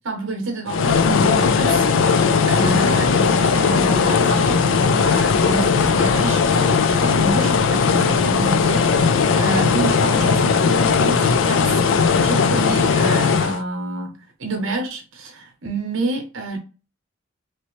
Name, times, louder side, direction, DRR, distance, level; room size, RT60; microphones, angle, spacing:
voice 1, 0.0-11.8 12.2-16.6, right 2 dB, 70° right, 0.9 m, -28 dB
sound 1, 0.7-13.6, left 5 dB, 70° left, 0.4 m, -18 dB
2.9 x 2.8 x 3.1 m
head